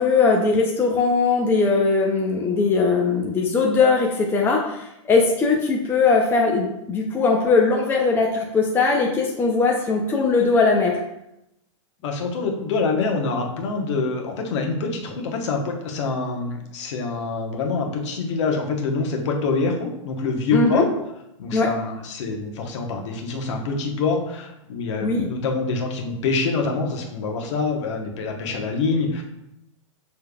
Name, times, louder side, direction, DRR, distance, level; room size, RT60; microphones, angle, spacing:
voice 1, 0.0-11.0 20.5-20.8 21.5-21.7 25.0-25.3, left 4 dB, 15° left, 0 dB, 0.5 m, -20 dB
voice 2, 12.0-20.9 21.4-29.2, left 4 dB, 60° left, 2 dB, 1.0 m, -25 dB
6.7 x 3.3 x 2.3 m, 0.84 s
hypercardioid pair, 130°, 17 cm